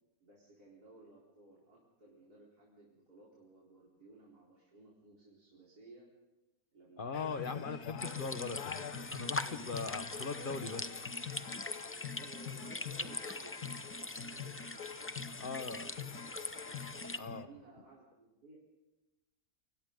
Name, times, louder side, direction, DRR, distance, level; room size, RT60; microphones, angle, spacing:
voice 1, 0.2-6.1 6.7-7.8 10.0-10.2 12.1-16.3 16.5-16.7 17.0-18.6, right 3 dB, 90° right, -5 dB, 4.7 m, -59 dB
voice 2, 7.0-11.0 15.4-15.9 17.2-17.5, left 4 dB, 35° left, 9 dB, 1.5 m, -40 dB
sound 1, 7.1-17.4, left 7 dB, 85° left, 1.6 m, -45 dB
sound 2, 8.0-17.2, left 2 dB, 15° left, 0.4 m, -42 dB
29.0 x 25.5 x 3.9 m, 1.1 s
omnidirectional pair, 1.6 m